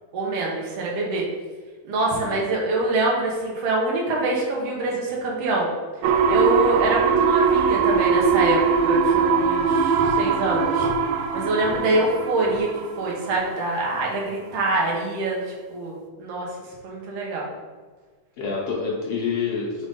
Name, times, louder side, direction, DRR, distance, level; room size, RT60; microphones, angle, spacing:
voice 1, 0.1-1.3 1.8-5.7 6.3-10.9 11.3-12.7 13.0-16.5 16.8-17.5, right 2 dB, 60° right, -3 dB, 1.9 m, -25 dB
voice 2, 2.1-2.4 11.8-12.0 18.4-19.9, left 5 dB, 80° left, -4 dB, 1.3 m, -28 dB
sound 1, 6.0-13.7 14.1-14.2, right 5 dB, 85° right, 1.6 m, -21 dB
5.2 x 4.0 x 5.2 m, 1.4 s
omnidirectional pair, 4.0 m